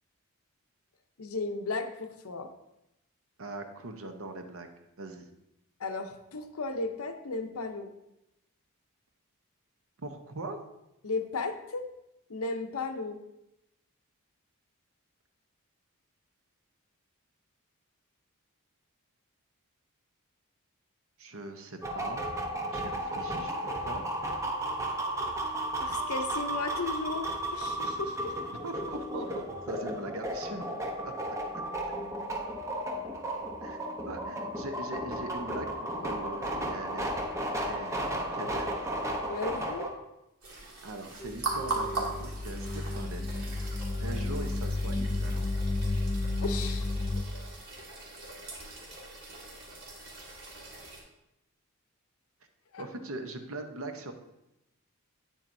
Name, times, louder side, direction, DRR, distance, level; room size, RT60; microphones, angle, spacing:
voice 1, 1.2-2.5 5.8-7.9 11.0-11.9 12.3-13.2 25.8-28.3 32.4-32.5 39.3-39.9 46.4-46.9 52.7-52.8, left 3 dB, 70° left, 7 dB, 0.7 m, -35 dB
voice 2, 3.4-4.7 5.0-5.3 10.0-10.6 21.2-22.3 22.7-23.5 23.8-24.0 28.6-30.7 31.0-31.1 31.5-31.6 33.6-33.8 34.1-38.7 40.8-43.5 44.0-45.5 52.8-54.1, right 2 dB, 65° right, 6 dB, 0.8 m, -41 dB
sound 1, 21.8-39.9, right 1 dB, 15° right, 0.8 m, -34 dB
sound 2, 40.4-51.0, right 3 dB, 80° right, 1.9 m, -40 dB
sound 3, 41.2-47.2, left 2 dB, 15° left, 0.3 m, -32 dB
8.6 x 7.3 x 2.6 m, 0.89 s
head